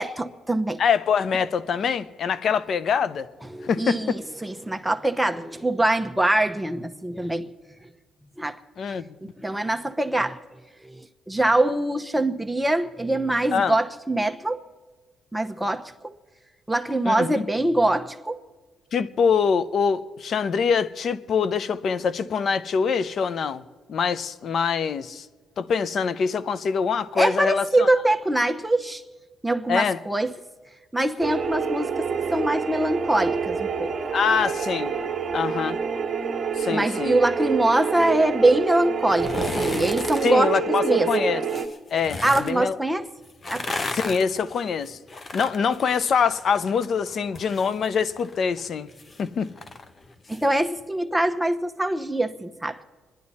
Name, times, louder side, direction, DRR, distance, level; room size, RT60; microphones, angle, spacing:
voice 1, 0.0-0.8 3.4-7.5 8.4-8.6 9.2-10.4 10.8-14.6 15.3-16.1 16.7-18.4 27.2-29.0 29.4-30.3 30.9-34.1 36.7-41.1 42.2-43.1 43.5-43.8 50.3-52.8, right 1 dB, 5° right, 0.9 m, -24 dB
voice 2, 0.8-3.3 3.6-4.2 8.8-9.0 13.5-13.7 17.0-17.5 18.9-23.6 23.9-25.3 25.6-27.9 29.7-30.0 34.1-34.9 35.3-35.8 36.6-37.2 40.2-41.4 41.9-42.8 43.9-45.0 45.3-48.9 49.2-49.5, left 6 dB, 60° left, 0.6 m, -24 dB
sound 1, 31.2-41.7, right 6 dB, 40° right, 1.3 m, -27 dB
sound 2, 39.1-40.3 41.5-42.5 43.3-46.7 47.0-50.5 50.8-50.9, left 3 dB, 35° left, 0.9 m, -34 dB
27.0 x 11.0 x 4.2 m
cardioid pair, 90°, 0 cm